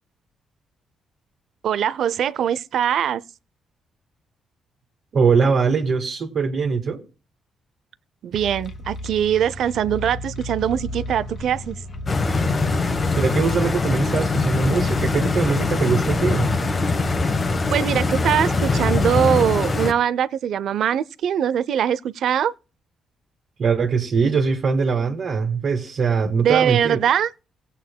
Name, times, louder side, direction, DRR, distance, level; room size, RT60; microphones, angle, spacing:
voice 1, 1.6-3.2 8.2-11.8 17.7-22.5 26.2-27.3, right 9 dB, 65° right, 0.5 m, -22 dB
voice 2, 5.1-7.0 13.1-16.5 23.6-27.0, right 5 dB, 50° right, 1.7 m, -21 dB
sound 1, 8.3-19.6, left 1 dB, 45° left, 1.6 m, -34 dB
Stream, 12.1-19.9, left 3 dB, 30° left, 1.1 m, -22 dB
18.5 x 8.2 x 2.2 m
cardioid pair, 130°, 0 cm